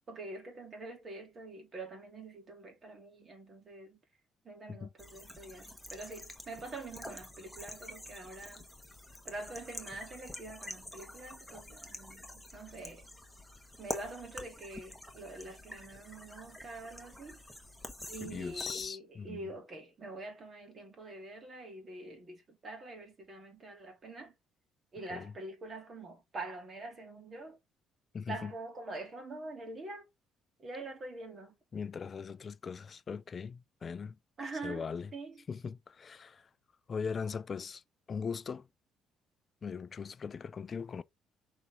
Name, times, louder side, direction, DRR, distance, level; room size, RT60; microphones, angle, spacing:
voice 1, 0.1-4.0 4.4-8.7 9.2-12.3 12.5-13.0 13.8-17.4 18.1-24.3 24.9-27.6 28.3-30.1 30.6-31.5 34.4-34.9 35.1-35.3, right 2 dB, 35° right, 2.9 m, -45 dB
sound 1, 5.0-18.9, left 1 dB, ahead, 1.3 m, -47 dB
voice 2, 18.2-19.5 25.1-25.3 28.1-28.5 31.7-34.2 34.6-35.1 35.5-36.5 36.9-37.8 38.1-38.7 39.6-41.0, left 6 dB, 35° left, 0.4 m, -40 dB
6.2 x 4.2 x 3.6 m
cardioid pair, 125°, 0 cm